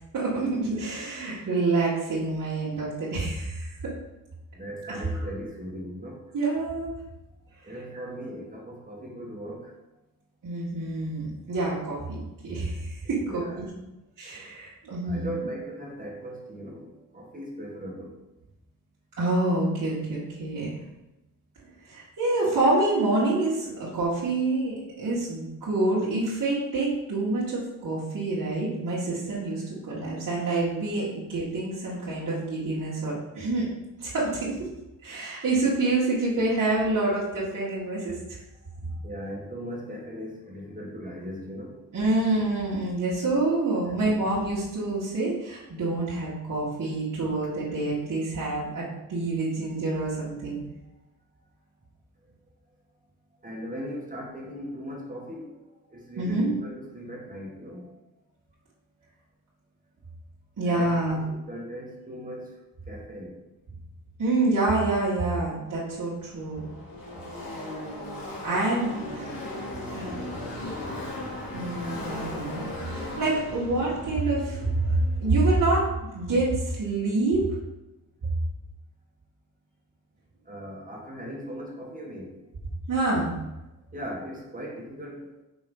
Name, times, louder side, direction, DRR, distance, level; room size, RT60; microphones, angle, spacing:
voice 1, 0.1-3.9 4.8-5.2 6.3-6.9 7.9-8.0 10.4-13.7 14.2-15.3 19.2-20.8 21.8-33.7 34.0-34.6 35.0-38.4 38.8-38.9 41.9-50.6 56.2-56.5 60.6-61.2 64.2-66.7 68.4-69.6 69.9-70.2 71.5-77.5 82.9-83.3, right 2 dB, 60° right, -9 dB, 2.2 m, -27 dB
voice 2, 4.5-6.2 7.6-9.7 13.1-13.6 15.0-18.2 38.9-41.8 43.9-44.1 53.4-55.6 55.9-57.9 60.7-62.6 62.9-63.4 80.5-82.4 83.9-85.4, equal, 25° right, -2 dB, 1.9 m, -39 dB
Car passing by / Race car auto racing, 66.0-76.2, left 1 dB, 80° left, 2.7 m, -37 dB
6.0 x 4.6 x 5.5 m, 0.97 s
wide cardioid pair, 125°, 35 cm